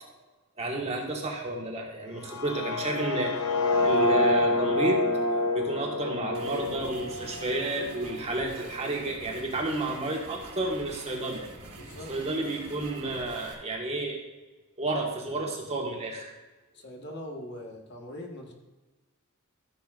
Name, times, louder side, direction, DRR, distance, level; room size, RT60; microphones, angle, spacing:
voice 1, 0.6-3.5 3.8-5.0 5.5-11.4 12.1-14.2 14.8-16.3, right 2 dB, 30° right, 0 dB, 1.5 m, -31 dB
sound 1, 2.1-8.1, left 2 dB, 75° left, 0.9 m, -27 dB
sound 2, 6.3-13.5, right 2 dB, 75° right, 1.8 m, -45 dB
voice 2, 11.7-12.1 16.7-18.5, left 1 dB, 50° left, 1 dB, 1.5 m, -41 dB
14.0 x 6.9 x 2.5 m, 1.2 s
head